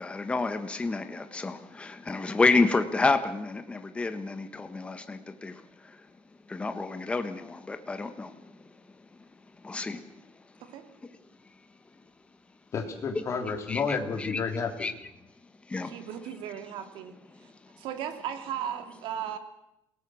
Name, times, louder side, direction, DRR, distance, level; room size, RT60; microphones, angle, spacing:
voice 1, 0.0-6.0 6.5-8.5 9.6-10.2 13.7-14.4 14.8-14.9 15.7-16.1, left 3 dB, 15° left, 9 dB, 1.3 m, -29 dB
voice 2, 12.7-14.9, left 5 dB, 35° left, 5 dB, 3.1 m, -31 dB
voice 3, 15.8-17.2 17.8-19.4, right 9 dB, 75° right, 7 dB, 3.0 m, -36 dB
28.5 x 18.0 x 6.3 m, 0.85 s
cardioid pair, 165°, 9 cm